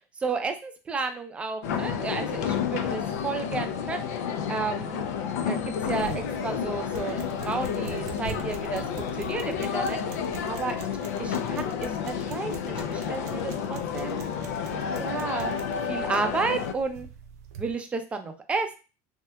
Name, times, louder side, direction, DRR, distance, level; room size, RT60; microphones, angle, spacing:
voice 1, 0.2-4.1 4.5-5.0 5.4-10.0 10.4-10.8 11.2-14.2 15.0-15.6 15.8-17.1 17.6-18.7, right 4 dB, 15° right, 7 dB, 0.4 m, -32 dB
sound 1, 1.6-16.7, left 7 dB, 85° left, 0.4 m, -30 dB
sound 2, 5.8-17.7, right 7 dB, 85° right, 0.5 m, -44 dB
3.3 x 2.7 x 2.3 m, 0.32 s
supercardioid pair, 145°, 8 cm